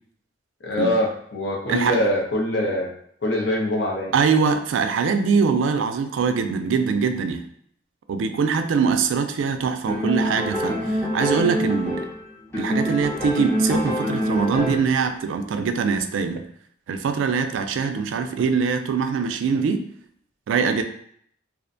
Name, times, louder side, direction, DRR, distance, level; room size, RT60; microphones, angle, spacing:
voice 1, 0.6-2.9 3.2-4.2, left 1 dB, 65° left, -1 dB, 0.5 m, -23 dB
voice 2, 4.1-7.4 8.1-12.1 12.6-16.5 16.9-19.8 20.5-20.8, right 5 dB, 85° right, 7 dB, 0.3 m, -23 dB
sound 1, 9.9-12.2 12.5-15.0, equal, 15° left, 0.6 m, -25 dB
2.4 x 2.1 x 2.5 m, 0.66 s
head